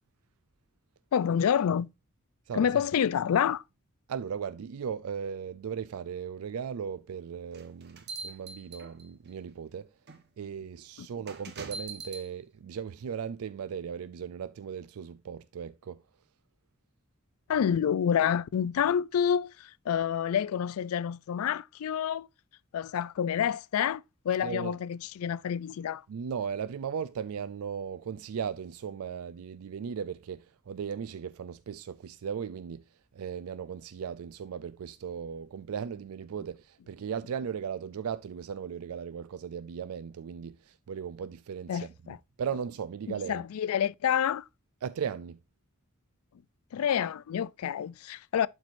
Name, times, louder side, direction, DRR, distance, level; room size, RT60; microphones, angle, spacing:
voice 1, 1.1-1.9 2.5-3.6 11.0-11.1 17.5-22.3 22.7-26.0 41.7-42.2 43.1-44.4 46.7-48.5, left 8 dB, 80° left, 0.3 m, -28 dB
voice 2, 4.1-9.9 10.4-16.0 24.4-24.8 26.1-32.8 33.1-43.4 44.8-45.4, right 7 dB, 85° right, 0.4 m, -37 dB
sound 1, 7.5-9.3 10.1-10.2 11.3-12.3, right 4 dB, 50° right, 1.1 m, -42 dB
11.5 x 4.6 x 2.5 m
head